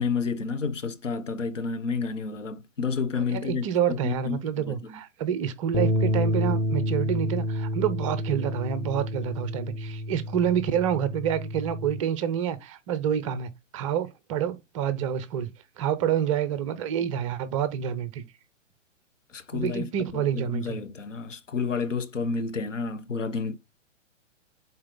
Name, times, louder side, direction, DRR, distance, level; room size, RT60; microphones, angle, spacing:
voice 1, 0.0-5.0 19.3-23.6, left 5 dB, 75° left, 1.2 m, -30 dB
voice 2, 3.1-15.5 15.8-18.2 19.5-20.8, right 9 dB, 25° right, 0.7 m, -28 dB
sound 1, 5.7-12.0, left 1 dB, 10° left, 0.8 m, -29 dB
7.6 x 4.1 x 3.8 m
figure-of-eight pair, 120°, 38 cm